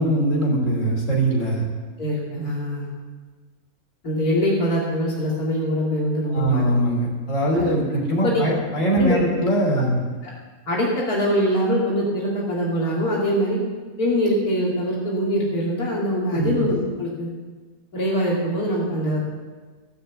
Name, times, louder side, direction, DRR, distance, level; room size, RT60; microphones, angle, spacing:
voice 1, 0.0-1.6 6.3-10.0 16.3-16.6, right 1 dB, 55° left, -1 dB, 3.4 m, -21 dB
voice 2, 2.0-2.9 4.0-6.6 7.5-7.7 8.2-8.4 9.0-9.2 10.2-10.3 10.7-13.6 14.0-17.3 17.9-19.2, equal, 80° left, -5 dB, 3.0 m, -23 dB
16.0 x 6.7 x 8.1 m, 1.4 s
omnidirectional pair, 1.6 m